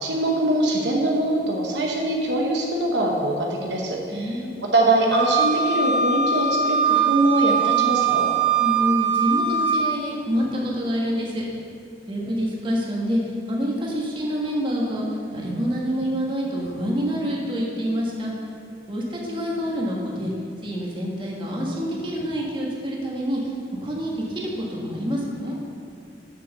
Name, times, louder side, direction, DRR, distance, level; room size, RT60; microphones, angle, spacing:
voice 1, 0.0-8.3, right 2 dB, 70° right, -1 dB, 1.0 m, -23 dB
voice 2, 4.1-4.6 8.6-11.5 12.0-13.2 13.5-15.1 15.3-18.3 18.9-20.3 20.6-23.4 23.8-25.6, equal, 25° right, -3 dB, 1.5 m, -27 dB
Wind instrument woodwind instrument, 5.1-9.8, right 6 dB, 15° left, 1.9 m, -21 dB
7.5 x 6.4 x 6.6 m, 2.4 s
head